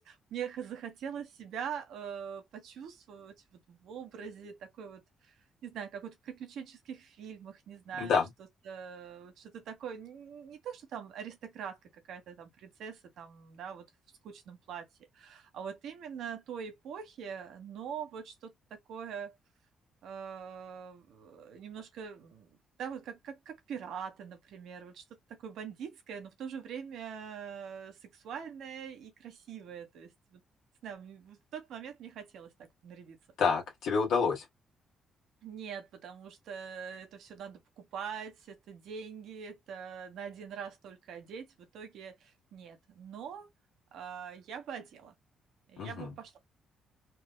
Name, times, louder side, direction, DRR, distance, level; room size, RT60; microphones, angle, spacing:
voice 1, 0.0-5.3 5.6-13.9 14.2-14.9 15.1-19.4 20.0-22.5 22.8-25.0 25.4-30.4 30.8-33.2 35.4-43.5 43.9-45.1 45.7-46.4, right 7 dB, 75° right, 1.3 m, -43 dB
voice 2, 33.4-34.4 45.8-46.1, left 5 dB, 75° left, 1.3 m, -28 dB
4.5 x 2.5 x 2.2 m
cardioid pair, 90°, 0 cm